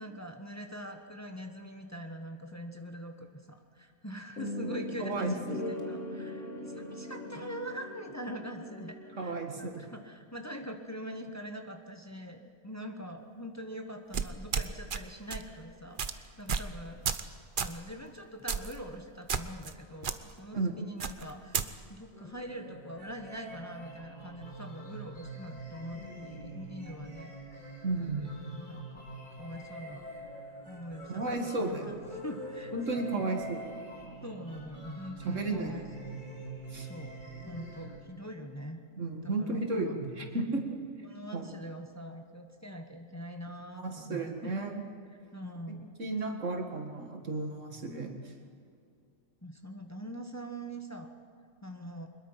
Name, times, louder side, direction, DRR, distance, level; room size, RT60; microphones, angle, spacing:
voice 1, 0.0-17.0 17.6-27.7 28.0-29.0 29.4-30.0 30.6-32.7 33.1-33.2 34.2-35.9 36.8-37.1 37.5-38.8 39.2-40.0 41.0-44.5 45.3-45.9 49.4-51.1 51.6-52.1, equal, 15° left, 4 dB, 1.3 m, -43 dB
sound 1, 4.4-9.5, left 1 dB, 75° left, 2.6 m, -40 dB
voice 2, 5.0-5.3 9.2-9.8 20.5-20.7 27.8-28.3 31.1-32.0 32.7-33.6 35.2-35.7 36.7-36.9 39.0-40.7 41.3-41.5 43.7-44.7 46.0-48.3, right 2 dB, 75° right, 4 dB, 2.4 m, -33 dB
sound 2, 14.1-15.0 15.3-15.5 16.0-16.1 16.5-16.7 17.0-17.3 17.6-17.8 18.5-18.8 19.3-19.7 20.0-20.2 21.0-21.7, right 6 dB, 45° right, 1.0 m, -32 dB
sound 3, 22.1-38.0, right 2 dB, 35° left, 4.8 m, -45 dB
23.0 x 21.0 x 5.9 m, 2.4 s
omnidirectional pair, 1.3 m